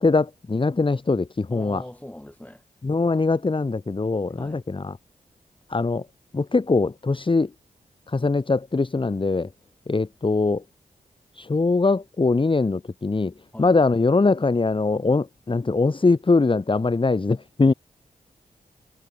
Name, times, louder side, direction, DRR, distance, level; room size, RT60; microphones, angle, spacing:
voice 1, 0.0-1.8 2.8-4.9 5.7-6.0 6.3-7.5 8.1-9.5 9.9-10.6 11.4-13.3 13.6-17.7, left 3 dB, 35° left, 1.3 m, -22 dB
voice 2, 1.5-2.6 4.4-4.6 13.5-13.7, left 1 dB, 10° left, 4.8 m, -40 dB
cardioid pair, 60°, 16 cm